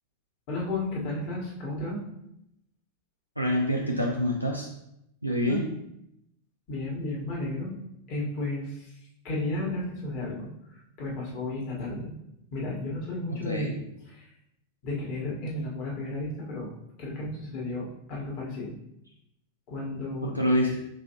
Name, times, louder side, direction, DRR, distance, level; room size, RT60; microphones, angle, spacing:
voice 1, 0.5-2.0 5.5-5.6 6.7-7.7 8.1-12.1 12.5-13.7 14.1-14.3 14.8-16.7 17.0-18.7 19.7-20.3, left 2 dB, 45° left, -3 dB, 1.4 m, -33 dB
voice 2, 3.4-4.7 5.2-5.6 13.3-13.8 20.2-20.8, equal, 90° left, -1 dB, 0.4 m, -26 dB
5.2 x 3.3 x 2.9 m, 0.80 s
figure-of-eight pair, 90°, 0 cm